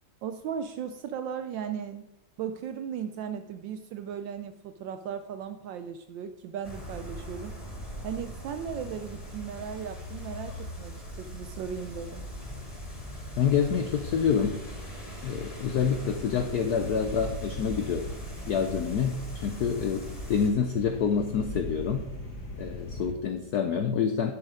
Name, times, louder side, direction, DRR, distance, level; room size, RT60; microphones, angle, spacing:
voice 1, 0.2-2.1 2.4-7.5 8.0-12.3, right 8 dB, 75° right, 9 dB, 1.1 m, -37 dB
sound 1, 6.6-20.5, equal, 15° left, 2.1 m, -41 dB
voice 2, 13.4-14.6 15.2-18.1 18.5-22.0 22.6-24.3, left 7 dB, 80° left, 6 dB, 0.8 m, -27 dB
sound 2, 15.7-23.1, left 1 dB, 40° left, 1.9 m, -39 dB
11.0 x 6.4 x 4.9 m, 0.90 s
omnidirectional pair, 2.4 m